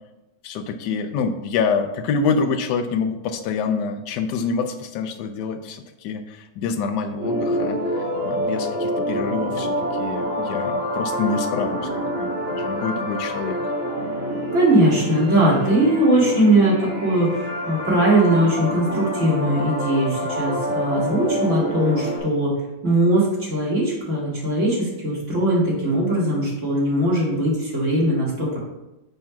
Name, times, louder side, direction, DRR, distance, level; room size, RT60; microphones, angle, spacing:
voice 1, 0.4-11.9 12.2-13.6, left 5 dB, 70° left, 7 dB, 1.1 m, -26 dB
sound 1, 7.2-22.2, equal, 10° right, 1.7 m, -27 dB
voice 2, 14.5-22.5 22.8-28.6, right 1 dB, 35° right, -6 dB, 2.4 m, -20 dB
6.5 x 3.4 x 5.8 m, 0.97 s
omnidirectional pair, 2.2 m